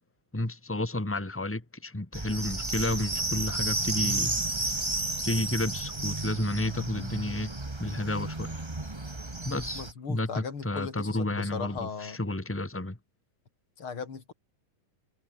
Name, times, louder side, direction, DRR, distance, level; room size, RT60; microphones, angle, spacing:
voice 1, 0.3-4.4 5.2-7.5 7.8-8.6 9.4-9.8 10.1-13.0, left 2 dB, 5° left, 1.7 m, -31 dB
sound 1, 2.1-9.9, right 2 dB, 35° right, 0.4 m, -32 dB
voice 2, 9.7-12.2 13.8-14.3, left 5 dB, 40° left, 3.9 m, -37 dB
omnidirectional pair, 3.8 m